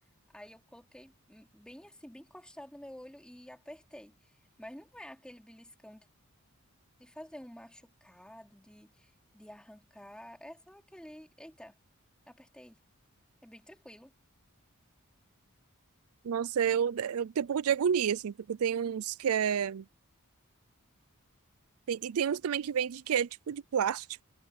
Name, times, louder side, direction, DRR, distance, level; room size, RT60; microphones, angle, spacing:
voice 1, 0.3-6.1 7.0-11.8 12.3-12.8 13.4-14.1, equal, 5° left, 3.7 m, -50 dB
voice 2, 16.2-19.8 21.9-24.1, right 8 dB, 75° right, 0.4 m, -30 dB
head